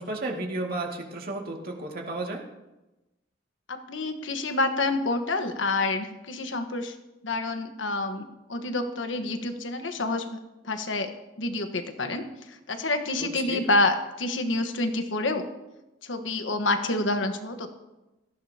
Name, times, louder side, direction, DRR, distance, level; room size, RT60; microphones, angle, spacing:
voice 1, 0.0-2.4 13.2-13.7, right 2 dB, 55° right, 0 dB, 2.2 m, -33 dB
voice 2, 3.7-6.9 7.2-10.4 10.6-11.1 11.4-15.5 16.0-17.8, left 2 dB, 80° left, 6 dB, 1.3 m, -28 dB
17.5 x 14.5 x 2.9 m, 1.0 s
head